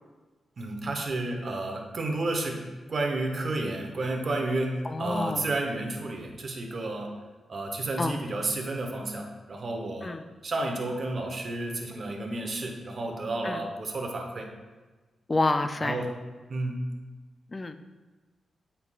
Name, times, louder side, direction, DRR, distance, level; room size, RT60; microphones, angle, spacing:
voice 1, 0.6-7.2 7.5-10.2 10.4-14.5 15.8-16.1 16.5-16.8, right 2 dB, 50° right, 2 dB, 1.0 m, -31 dB
voice 2, 4.8-5.5 8.0-8.2 10.0-10.2 13.4-13.6 15.3-16.0 17.5-17.7, left 2 dB, 30° left, 10 dB, 0.4 m, -28 dB
7.9 x 5.5 x 2.4 m, 1.3 s
cardioid pair, 85°, 0 cm